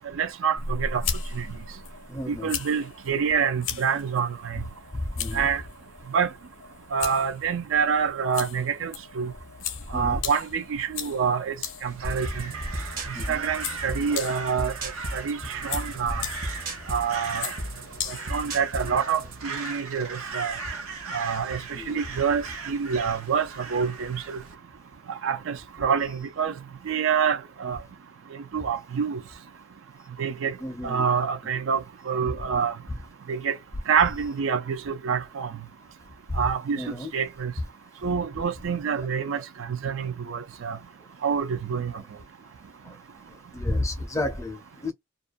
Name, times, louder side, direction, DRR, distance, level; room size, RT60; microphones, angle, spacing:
voice 1, 0.1-1.0 1.4-1.5 2.3-4.6 5.3-5.6 6.1-6.3 6.9-9.3 9.9-12.4 13.3-14.7 15.1-16.2 16.9-17.5 18.1-20.6 21.1-24.4 25.1-26.5 26.9-27.8 28.3-29.2 30.2-30.6 30.8-32.8 33.3-33.5 33.9-35.5 36.4-36.8 37.1-37.5 38.0-40.8 41.2-41.9, right 6 dB, 65° right, 0.4 m, -27 dB
sound 1, 0.6-18.9, left 6 dB, 70° left, 0.6 m, -38 dB
voice 2, 2.1-2.5 5.0-5.5 9.9-10.2 13.1-13.4 16.1-16.2 21.7-22.0 30.6-31.1 36.3-36.4 36.8-37.1 42.8-42.9 43.3-44.9, left 1 dB, 15° left, 0.5 m, -31 dB
Crow, 11.9-24.5, right 4 dB, 85° right, 0.8 m, -38 dB
sound 2, 12.0-19.4, right 1 dB, 40° right, 0.7 m, -36 dB
2.4 x 2.1 x 2.4 m
head